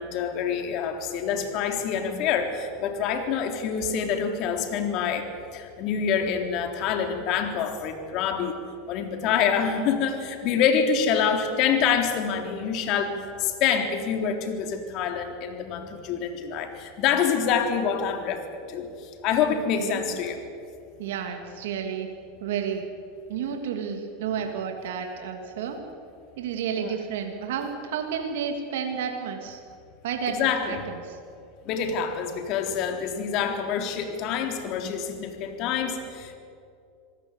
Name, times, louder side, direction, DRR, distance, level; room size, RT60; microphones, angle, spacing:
voice 1, 0.0-5.3 5.5-8.6 8.9-18.4 18.7-20.4 26.8-26.9 30.3-30.9 31.7-36.4, left 7 dB, 50° left, 5 dB, 3.7 m, -26 dB
voice 2, 21.0-22.1 22.4-22.8 23.3-25.8 26.4-29.6 30.0-31.2, right 7 dB, 80° right, 4 dB, 2.9 m, -31 dB
27.0 x 18.0 x 8.4 m, 2.4 s
supercardioid pair, 115°, 0 cm